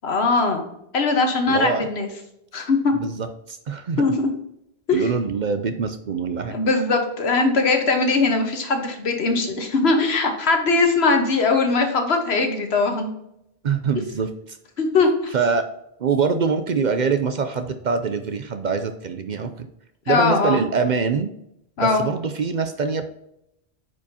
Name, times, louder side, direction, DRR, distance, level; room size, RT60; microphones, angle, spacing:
voice 1, 0.0-0.6 0.9-2.1 2.5-2.9 4.0-4.3 4.9-5.0 6.5-13.1 14.8-15.3 20.1-20.6 21.8-22.0, left 3 dB, 80° left, 5 dB, 1.4 m, -20 dB
voice 2, 1.5-1.9 2.9-4.0 4.9-6.6 13.6-14.6 15.3-15.6 16.0-19.7 20.1-21.3 21.8-23.1, right 5 dB, 50° right, 8 dB, 0.6 m, -24 dB
9.2 x 4.9 x 2.8 m, 0.80 s
omnidirectional pair, 1.1 m